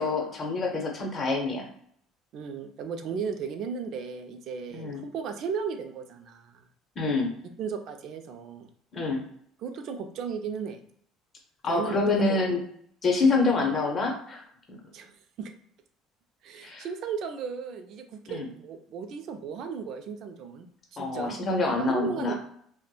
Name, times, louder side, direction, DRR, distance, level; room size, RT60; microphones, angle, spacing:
voice 1, 0.0-1.7 4.7-5.0 7.0-7.3 8.9-9.2 11.6-12.6 13.0-14.4 14.7-14.8 16.6-16.9 18.3-18.5 21.0-22.4, left 3 dB, 35° left, 1 dB, 0.7 m, -26 dB
voice 2, 2.3-6.6 7.6-8.7 9.6-10.8 11.6-12.4 14.9-15.1 15.4-15.5 16.4-20.7 20.9-21.4 21.7-22.4, right 6 dB, 55° right, 6 dB, 0.3 m, -35 dB
2.9 x 2.1 x 2.3 m, 0.65 s
cardioid pair, 115°, 0 cm